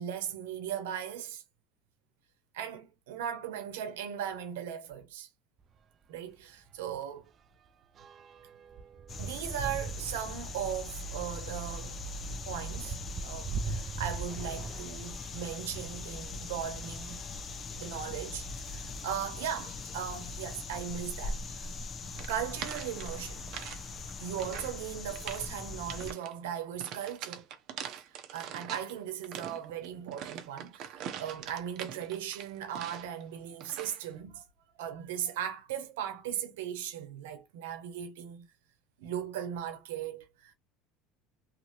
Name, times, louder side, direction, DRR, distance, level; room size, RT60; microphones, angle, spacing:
voice 1, 0.0-1.4 2.5-5.3 6.1-7.3 9.2-12.0 12.3-13.0 13.2-17.2 17.8-21.7 22.3-23.5 24.2-27.4 28.1-34.4 34.8-38.5 39.0-40.5, right 9 dB, 90° right, 0.9 m, -38 dB
sound 1, 5.6-5.8 6.1-6.3 6.6-16.1 16.8-18.1 18.8-18.9 19.2-19.3 20.9-21.0 21.7-22.0 22.4-23.6, right 5 dB, 35° right, 0.4 m, -43 dB
sound 2, 9.1-26.1, left 2 dB, 30° left, 0.7 m, -41 dB
sound 3, 22.1-23.8 24.1-24.8 25.1-25.5 25.9-26.3 26.8-28.9 29.2-33.2 33.6-34.0, right 9 dB, 55° right, 0.7 m, -43 dB
2.8 x 2.7 x 2.8 m
supercardioid pair, 110°, 0 cm